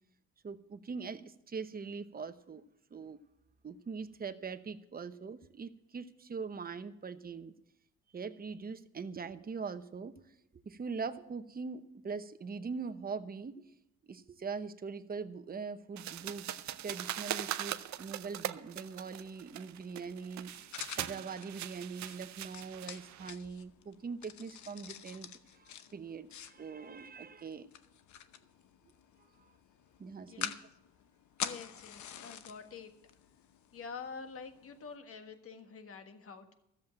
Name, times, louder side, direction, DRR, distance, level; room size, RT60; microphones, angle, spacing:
voice 1, 0.4-2.6 2.9-3.2 3.6-7.5 8.1-10.1 10.7-13.7 14.0-27.7 29.4-29.5 30.0-30.5, right 5 dB, 30° right, 10 dB, 0.9 m, -42 dB
sound 1, 16.0-35.0, left 9 dB, 70° left, 0.9 m, -48 dB
sound 2, 16.0-23.3, right 12 dB, 65° right, 0.6 m, -41 dB
voice 2, 30.2-30.6 31.4-32.9 33.7-36.5, left 5 dB, 50° left, 7 dB, 1.5 m, -47 dB
13.5 x 7.4 x 7.8 m, 0.81 s
cardioid pair, 90°, 30 cm